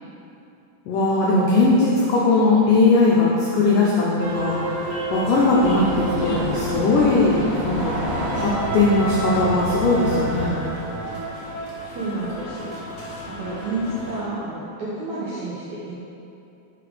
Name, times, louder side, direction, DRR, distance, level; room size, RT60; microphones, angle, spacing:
voice 1, 0.9-4.8 5.1-7.4 7.6-7.9 8.3-10.5, left 3 dB, 85° left, -4 dB, 1.9 m, -19 dB
sound 1, 4.2-14.2, left 1 dB, 65° left, 2.4 m, -36 dB
sound 2, 4.2-11.3, right 3 dB, 90° right, 2.0 m, -30 dB
sound 3, 5.5-10.5, equal, 55° right, 2.8 m, -29 dB
voice 2, 6.2-6.5 11.9-12.8 13.4-15.9, right 2 dB, 70° right, -10 dB, 1.7 m, -30 dB
6.8 x 5.1 x 4.9 m, 2.7 s
omnidirectional pair, 4.8 m